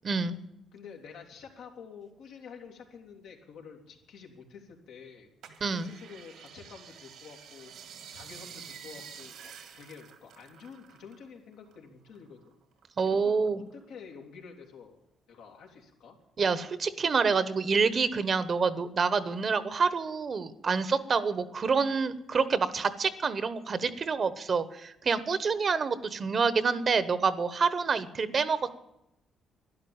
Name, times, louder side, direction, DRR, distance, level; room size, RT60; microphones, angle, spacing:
voice 1, 0.0-0.4 5.6-5.9 13.0-13.6 16.4-28.8, right 5 dB, 45° right, 14 dB, 1.1 m, -27 dB
voice 2, 0.7-5.3 5.7-7.7 8.1-12.5 13.0-15.0 15.3-16.2, left 6 dB, 90° left, 1 dB, 2.9 m, -49 dB
sound 1, 5.4-11.3 11.5-12.8 13.3-14.1 14.6-14.7, right 7 dB, 80° right, 2.1 m, -49 dB
12.0 x 11.0 x 8.8 m, 0.86 s
cardioid pair, 90°, 0 cm